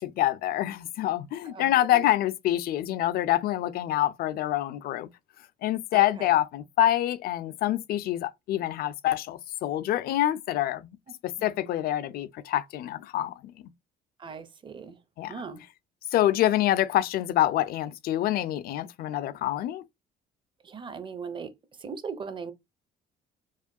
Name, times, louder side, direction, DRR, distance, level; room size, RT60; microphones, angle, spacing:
voice 1, 0.0-5.1 5.6-11.0 11.2-13.5 15.2-15.4 16.1-19.8, left 13 dB, 65° left, 0.4 m, -26 dB
voice 2, 1.4-2.0 5.9-6.4 11.4-11.7 14.2-15.0 15.3-15.6 20.6-22.5, right 5 dB, 30° right, 0.7 m, -39 dB
4.8 x 2.2 x 2.7 m
cardioid pair, 110°, 17 cm